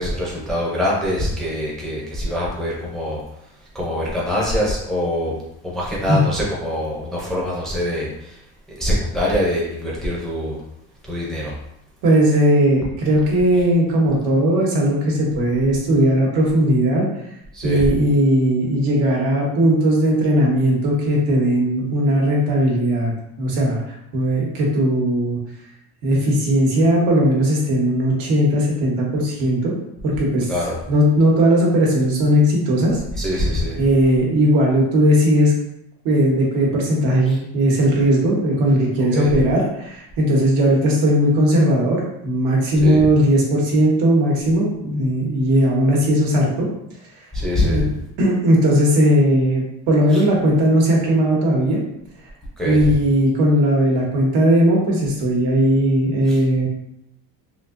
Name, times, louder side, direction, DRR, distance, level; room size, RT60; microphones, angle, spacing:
voice 1, 0.0-3.2 3.7-5.3 5.6-8.4 8.8-10.6 11.0-11.5 17.5-17.8 30.5-30.8 33.2-33.8 37.3-37.4 39.1-39.3 42.8-43.0 47.3-47.8 50.1-50.2 52.6-52.9 56.3-56.4, left 1 dB, ahead, -5 dB, 0.4 m, -24 dB
voice 2, 12.0-17.1 17.6-23.1 23.4-23.8 24.1-25.4 26.0-29.7 30.0-30.5 30.9-33.0 33.8-35.5 36.0-46.7 47.6-47.8 48.2-51.8 52.6-56.7, equal, 90° right, -3 dB, 1.2 m, -17 dB
3.7 x 2.7 x 2.5 m, 0.81 s
cardioid pair, 170°, 40 cm